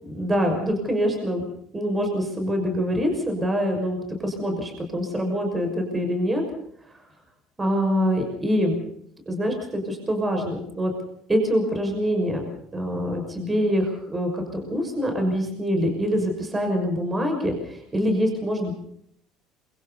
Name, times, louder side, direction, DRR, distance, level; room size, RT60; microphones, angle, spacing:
voice 1, 0.0-1.5 1.7-6.4 7.6-8.8 9.3-10.9 11.3-12.4 12.7-18.7, equal, 15° right, 3 dB, 6.1 m, -25 dB
27.0 x 24.0 x 4.2 m, 0.69 s
cardioid pair, 125°, 0 cm